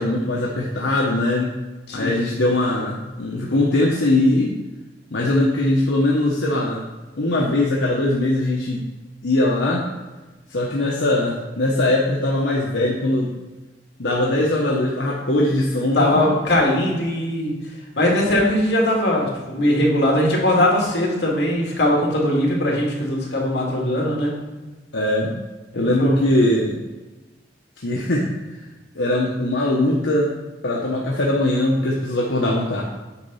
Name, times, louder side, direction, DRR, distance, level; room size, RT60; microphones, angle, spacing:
voice 1, 0.0-1.6 1.9-4.5 5.1-6.8 7.1-8.8 9.2-9.9 10.5-13.3 14.0-16.1 24.9-25.3 25.7-26.8 27.8-28.3 28.9-30.3 30.6-32.8, left 1 dB, 85° left, -3 dB, 1.1 m, -20 dB
voice 2, 15.9-17.5 18.0-24.3 25.7-26.2, left 1 dB, 70° left, -2 dB, 2.3 m, -20 dB
8.7 x 4.0 x 5.6 m, 1.2 s
head